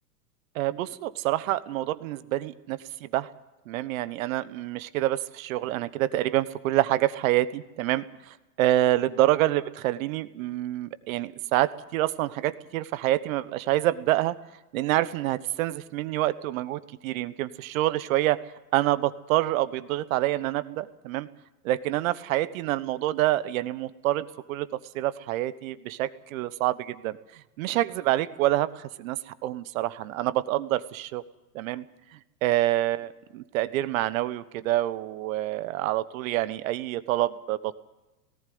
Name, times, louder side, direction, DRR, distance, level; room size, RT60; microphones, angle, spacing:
voice 1, 0.5-3.3 3.7-14.3 14.7-18.4 18.7-21.3 21.6-24.7 24.9-31.2 31.5-31.8 32.4-37.8, right 15 dB, 55° right, 15 dB, 1.2 m, -27 dB
18.0 x 15.5 x 9.4 m, 1.0 s
hypercardioid pair, 130°, 48 cm